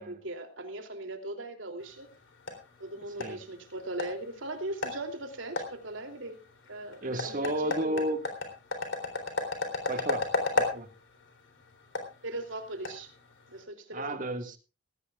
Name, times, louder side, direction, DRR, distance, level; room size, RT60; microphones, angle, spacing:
voice 1, 0.0-2.1 2.8-6.4 6.7-8.1 12.2-13.1 13.5-14.4, right 1 dB, 85° right, 5 dB, 3.0 m, -39 dB
sound 1, 1.8-13.6, left 3 dB, 85° left, 3.7 m, -36 dB
voice 2, 7.0-8.2 9.9-10.3 10.6-10.9 13.9-14.6, right 1 dB, 45° right, 7 dB, 1.9 m, -32 dB
19.0 x 16.5 x 2.4 m, 0.31 s
head